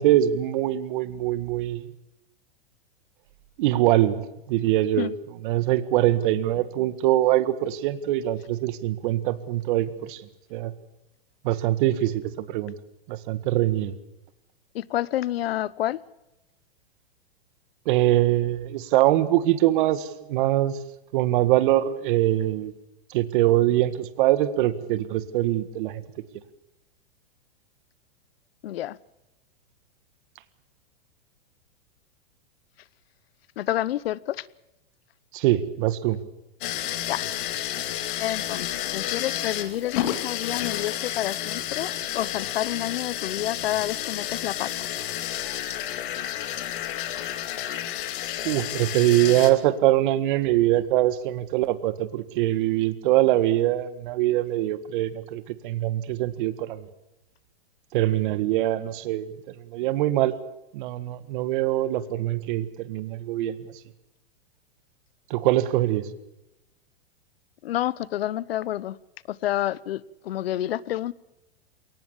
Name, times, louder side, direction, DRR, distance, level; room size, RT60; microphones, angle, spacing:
voice 1, 0.0-1.8 3.6-5.1 5.4-10.2 10.5-10.7 11.4-12.7 13.1-13.9 17.8-20.8 21.1-22.7 23.1-26.0 35.3-36.2 48.4-56.8 57.9-60.3 60.7-63.6 65.3-66.1, right 14 dB, 55° right, 14 dB, 1.8 m, -23 dB
voice 2, 14.7-16.0 28.6-29.0 33.6-34.5 37.1-37.2 38.2-44.9 67.6-69.0 69.3-71.1, left 13 dB, 70° left, 22 dB, 1.0 m, -29 dB
sound 1, 36.6-49.5, left 12 dB, 55° left, 2.5 m, -31 dB
22.5 x 19.0 x 7.2 m, 0.92 s
hypercardioid pair, 130°, 31 cm